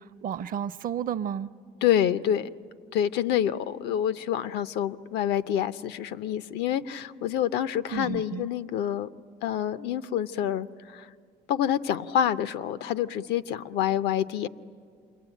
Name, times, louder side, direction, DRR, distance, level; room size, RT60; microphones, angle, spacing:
voice 1, 0.0-1.5 7.9-8.5, right 8 dB, 55° right, 12 dB, 0.7 m, -32 dB
voice 2, 1.8-2.5 2.9-9.1 9.4-11.1 11.5-14.5, left 10 dB, 85° left, 14 dB, 0.7 m, -27 dB
28.0 x 22.5 x 9.1 m, 2.3 s
cardioid pair, 110°, 17 cm